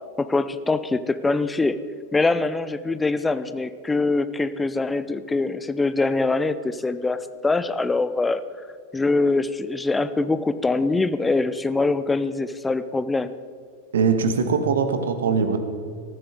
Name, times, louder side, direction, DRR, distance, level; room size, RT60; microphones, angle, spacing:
voice 1, 0.2-1.8 2.1-8.4 8.9-13.3, left 3 dB, 10° left, 13 dB, 0.7 m, -23 dB
voice 2, 13.9-15.6, right 5 dB, 65° right, 8 dB, 1.5 m, -21 dB
19.5 x 14.0 x 3.8 m, 2.1 s
figure-of-eight pair, 90°, 0 cm